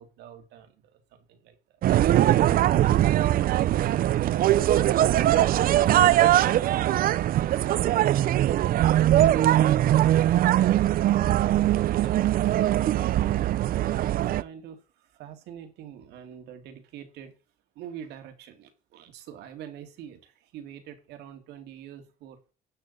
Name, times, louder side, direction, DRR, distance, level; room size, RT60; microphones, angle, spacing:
voice 1, 0.0-1.8 2.9-8.2 9.2-10.9 12.0-12.6 12.9-13.3 13.8-17.3 17.8-22.4, right 9 dB, 85° right, 6 dB, 2.2 m, -46 dB
sound 1, 1.8-14.4, right 13 dB, 60° right, 0.6 m, -21 dB
12.5 x 7.7 x 4.1 m, 0.35 s
cardioid pair, 110°, 17 cm